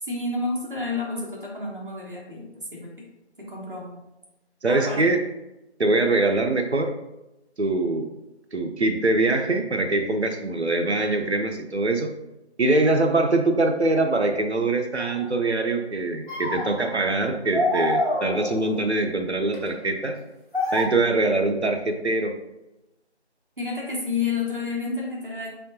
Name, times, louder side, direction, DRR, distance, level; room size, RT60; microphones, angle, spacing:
voice 1, 0.0-2.9 3.4-4.0 4.7-5.0 23.6-25.5, left 4 dB, 50° right, -3 dB, 1.2 m, -30 dB
voice 2, 4.6-5.2 5.8-6.9 7.6-8.1 8.5-12.1 12.6-20.2 20.7-22.3, right 2 dB, 70° right, 5 dB, 0.7 m, -23 dB
sound 1, 15.0-15.2 16.3-17.1 17.5-18.8 19.5-19.7 20.5-20.8, left 1 dB, 45° left, 1.3 m, -26 dB
4.3 x 3.6 x 2.8 m, 0.94 s
figure-of-eight pair, 180°, 34 cm